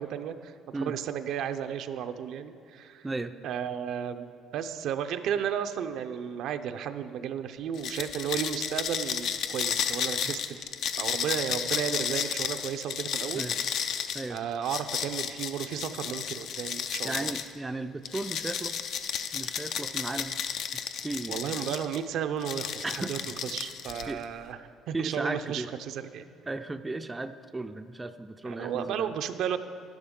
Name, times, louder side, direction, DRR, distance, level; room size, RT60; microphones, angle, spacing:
voice 1, 0.0-3.1 3.4-10.7 11.0-13.5 14.3-17.3 21.3-24.6 24.9-26.3 28.4-29.6, right 8 dB, 70° right, 8 dB, 0.5 m, -33 dB
sound 1, 7.8-17.5 18.1-22.0 22.4-24.2, left 8 dB, 65° left, 0.5 m, -33 dB
voice 2, 17.0-18.8 19.3-20.4 21.0-21.7 22.8-23.4 24.1-24.2 24.5-24.6 24.9-25.7 26.5-29.1, right 2 dB, 15° right, 8 dB, 0.4 m, -35 dB
11.0 x 10.5 x 3.7 m, 2.7 s
cardioid pair, 100°, 0 cm